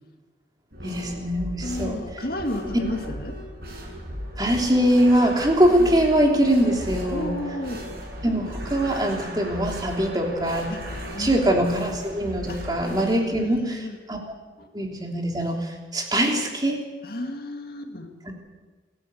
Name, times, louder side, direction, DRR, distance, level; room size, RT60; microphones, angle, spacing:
sound 1, 0.7-13.0, equal, 55° right, 6.9 m, -36 dB
voice 1, 0.8-2.0 4.4-7.3 8.2-10.7 11.2-14.2 14.7-16.8 18.3-18.4, right 1 dB, 20° right, 1 dB, 3.3 m, -22 dB
voice 2, 1.6-3.4 7.1-7.8 10.7-10.8 11.1-11.6 12.5-12.6 13.0-14.0 14.6-14.7 17.0-18.1, left 1 dB, 55° left, 5 dB, 2.4 m, -32 dB
28.0 x 12.5 x 8.1 m, 1.4 s
head